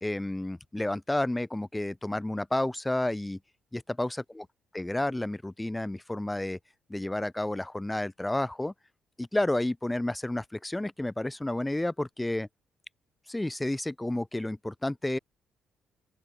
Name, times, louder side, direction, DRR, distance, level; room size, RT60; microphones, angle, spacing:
voice 1, 0.0-3.4 3.7-4.5 4.7-6.6 6.9-8.7 9.2-12.5 13.3-15.2, left 1 dB, 10° left, 3.2 m, -31 dB
open air
hypercardioid pair, 50°, 0 cm